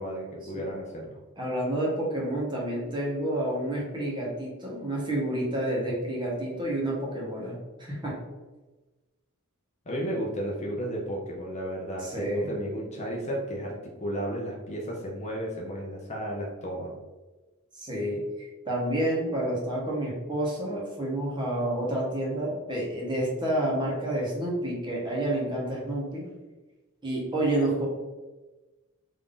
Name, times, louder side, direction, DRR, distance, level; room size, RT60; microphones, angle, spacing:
voice 1, 0.0-1.2 9.9-16.9, equal, 30° left, -2 dB, 0.6 m, -33 dB
voice 2, 1.4-8.2 12.0-12.5 17.7-26.3 27.0-27.9, right 1 dB, 20° right, -4 dB, 0.9 m, -29 dB
3.6 x 2.6 x 3.6 m, 1.2 s
head